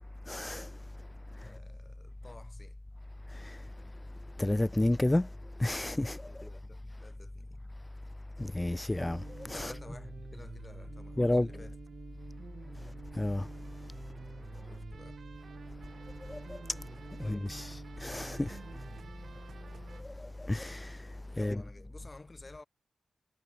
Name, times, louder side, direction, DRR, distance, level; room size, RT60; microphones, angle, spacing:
voice 1, 0.3-0.7 3.4-3.6 4.4-5.3 5.6-6.2 8.4-9.7 11.2-11.5 13.2-13.5 16.3-16.4 17.3-18.6 20.5-21.0 21.4-21.6, left 1 dB, 15° left, 0.8 m, -30 dB
voice 2, 1.3-2.8 6.3-7.6 9.5-11.8 14.6-15.2 17.2-17.5 18.8-19.3 21.3-22.6, left 3 dB, 30° left, 4.8 m, -53 dB
sound 1, 9.0-20.0, right 6 dB, 70° right, 2.8 m, -49 dB
cardioid pair, 75°, 0 cm